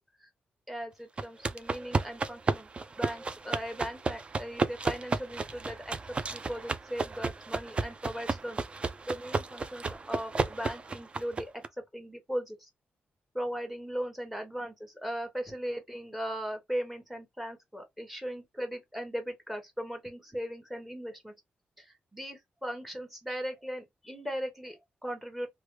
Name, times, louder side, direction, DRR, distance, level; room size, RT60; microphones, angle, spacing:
voice 1, 0.7-2.7 3.0-12.7 13.3-21.3 21.8-25.5, equal, 5° right, 1.0 m, -38 dB
sound 1, 1.2-11.7, right 4 dB, 30° right, 0.4 m, -33 dB
3.2 x 2.2 x 3.1 m
cardioid pair, 115°, 4 cm